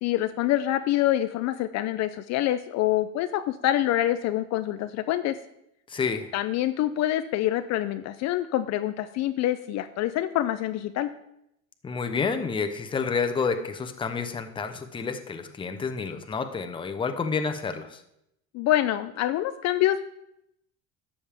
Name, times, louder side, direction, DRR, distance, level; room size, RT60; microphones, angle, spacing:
voice 1, 0.0-5.3 6.3-11.1 18.5-20.0, left 13 dB, 55° left, 10 dB, 0.5 m, -26 dB
voice 2, 5.9-6.3 11.8-18.0, left 5 dB, 15° left, 7 dB, 0.7 m, -29 dB
12.0 x 7.1 x 3.4 m, 0.79 s
cardioid pair, 150°, 34 cm